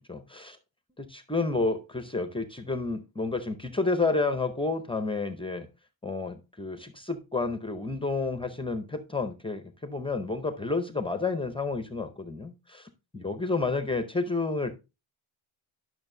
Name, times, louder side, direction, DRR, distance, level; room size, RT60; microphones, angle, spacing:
voice 1, 0.1-0.6 1.0-5.7 6.0-14.7, left 3 dB, 10° left, 0.5 m, -30 dB
11.0 x 6.2 x 2.6 m
cardioid pair, 145°, 48 cm